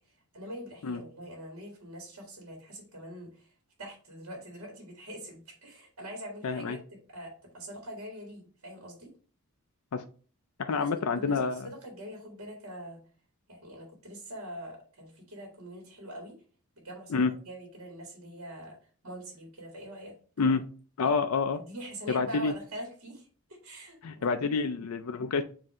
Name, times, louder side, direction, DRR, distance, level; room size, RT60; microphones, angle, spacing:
voice 1, 0.3-3.5 3.8-6.8 7.1-9.1 10.7-13.0 13.5-16.4 16.8-18.8 19.0-20.1 20.4-20.6 21.0-21.2 21.5-24.3 24.5-24.7, equal, 70° right, 1 dB, 2.1 m, -44 dB
voice 2, 6.4-6.8 9.9-10.0 10.6-11.7 17.1-17.3 20.4-20.6 21.0-21.6 22.1-22.5 24.0-25.4, left 4 dB, 75° left, 9 dB, 0.4 m, -28 dB
7.4 x 2.7 x 4.8 m, 0.40 s
head